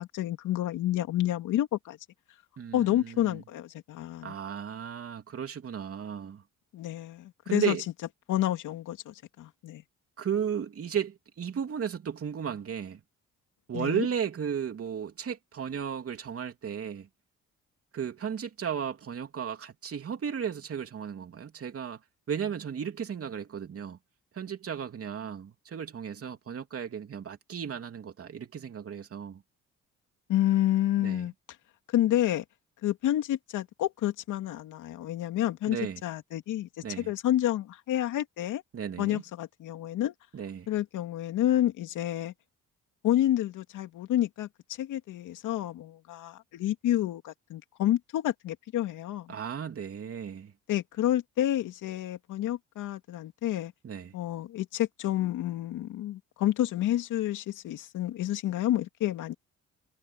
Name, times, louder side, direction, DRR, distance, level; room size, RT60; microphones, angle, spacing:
voice 1, 0.0-2.0 2.7-4.3 6.7-7.8 8.3-9.8 13.7-14.1 30.3-31.3 31.9-32.4 32.8-35.8 36.0-36.7 37.0-38.6 39.0-40.1 40.7-42.3 43.0-44.5 44.8-49.3 50.7-53.7 54.1-59.3, left 13 dB, 85° left, 2.7 m, -29 dB
voice 2, 2.6-3.4 4.2-6.4 7.4-7.8 10.2-13.0 13.7-17.1 17.9-22.0 22.3-24.0 24.3-29.4 31.0-31.3 35.7-36.0 36.8-37.1 38.7-39.2 40.3-40.7 49.3-50.5 53.8-54.1, right 8 dB, 50° right, 3.2 m, -34 dB
cardioid pair, 90°, 30 cm